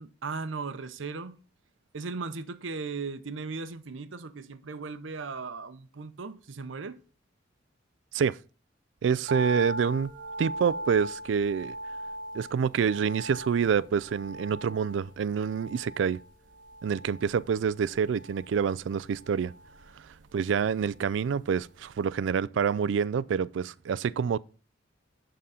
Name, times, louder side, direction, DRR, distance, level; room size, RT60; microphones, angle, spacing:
voice 1, 0.0-1.3 1.9-7.0, right 4 dB, 90° right, 0.7 m, -37 dB
voice 2, 9.0-10.1 10.4-11.8 12.3-16.2 16.8-19.5 20.3-24.4, right 6 dB, 70° right, 0.3 m, -27 dB
sound 1, 9.3-21.6 21.8-21.9, right 1 dB, 45° right, 1.9 m, -40 dB
11.0 x 3.8 x 5.6 m
head